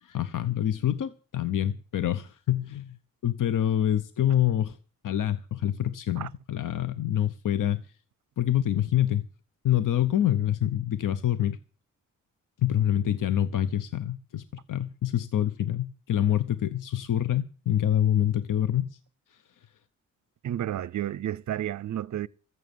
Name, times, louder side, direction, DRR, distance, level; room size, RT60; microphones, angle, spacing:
voice 1, 0.0-3.0 3.2-4.8 5.0-7.8 8.4-9.2 9.6-11.6 12.6-19.0, left 11 dB, 70° left, 1.0 m, -26 dB
voice 2, 20.4-22.3, right 11 dB, 60° right, 0.6 m, -31 dB
14.5 x 8.1 x 9.9 m
cardioid pair, 95°, 33 cm